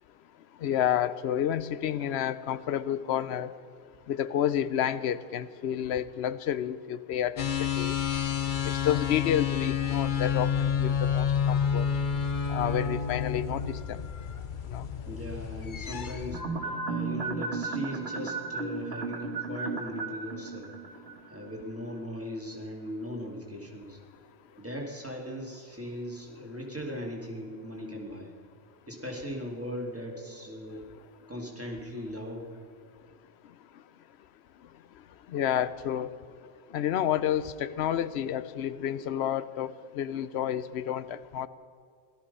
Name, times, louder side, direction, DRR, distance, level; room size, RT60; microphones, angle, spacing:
voice 1, 0.6-3.5 4.1-7.9 8.8-11.8 12.5-13.6 13.9-14.0 14.7-14.8 35.3-36.1 36.7-41.5, left 10 dB, 90° left, 15 dB, 0.9 m, -30 dB
sound 1, 7.4-16.4, left 7 dB, 50° left, 1.0 m, -29 dB
voice 2, 15.0-20.7 21.3-24.0 24.6-28.3 28.9-30.9 31.3-32.6, equal, 15° right, -1 dB, 2.6 m, -39 dB
sound 2, 16.3-21.7 22.0-22.1, right 4 dB, 80° right, 1.7 m, -34 dB
17.0 x 13.0 x 5.5 m, 2.3 s
omnidirectional pair, 1.1 m